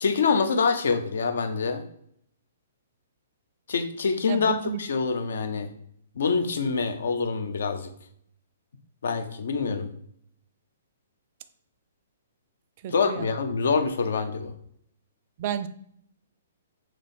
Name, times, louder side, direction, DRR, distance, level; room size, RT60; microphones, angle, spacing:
voice 1, 0.0-1.8 3.7-5.7 6.2-7.9 9.0-9.9 12.9-14.5, left 5 dB, 70° left, 7 dB, 0.6 m, -25 dB
voice 2, 4.3-4.8 12.8-13.4 15.4-15.7, right 9 dB, 45° right, 12 dB, 0.4 m, -32 dB
3.1 x 2.9 x 4.2 m, 0.68 s
hypercardioid pair, 125°, 0 cm